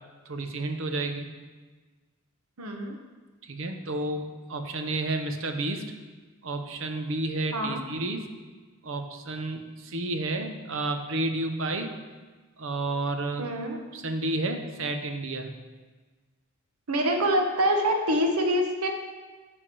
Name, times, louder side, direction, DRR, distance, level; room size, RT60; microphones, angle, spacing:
voice 1, 0.3-1.3 3.4-5.9 6.4-8.3 8.8-11.9 12.6-13.5 13.9-15.5, right 2 dB, 60° right, 6 dB, 0.8 m, -31 dB
voice 2, 2.6-3.0 7.5-7.8 13.4-13.8 16.9-18.9, equal, 90° right, 3 dB, 1.2 m, -25 dB
10.0 x 3.5 x 7.0 m, 1.4 s
head